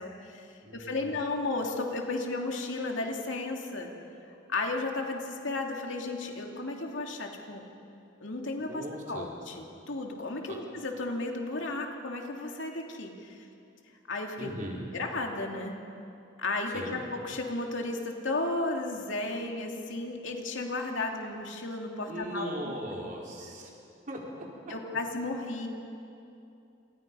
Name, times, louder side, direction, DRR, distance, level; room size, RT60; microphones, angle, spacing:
voice 1, 0.0-0.5 0.7-3.9 4.5-7.7 8.2-13.4 14.1-14.5 14.9-15.8 16.4-22.7 24.7-25.7, left 2 dB, 70° left, 1 dB, 2.7 m, -34 dB
voice 2, 0.6-1.1 8.6-9.3 10.5-10.6 14.4-14.9 16.7-17.1 22.0-23.7 24.1-24.7, right 1 dB, 40° right, -2 dB, 4.7 m, -39 dB
28.5 x 28.0 x 5.6 m, 2.7 s
head